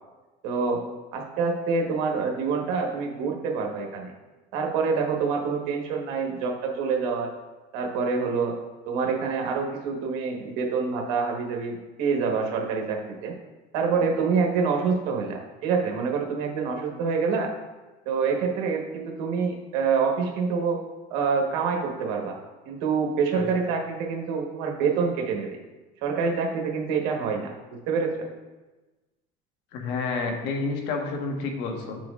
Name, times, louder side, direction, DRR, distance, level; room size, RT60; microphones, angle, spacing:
voice 1, 0.4-0.8 1.1-4.1 4.5-7.3 7.7-8.5 8.8-13.3 13.7-17.5 18.0-20.8 21.1-22.4 22.6-25.6 26.0-28.3, right 5 dB, 85° right, 1 dB, 1.2 m, -26 dB
voice 2, 29.7-32.0, left 4 dB, 75° left, 2 dB, 1.2 m, -29 dB
8.8 x 6.1 x 2.4 m, 1.2 s
cardioid pair, 125°, 18 cm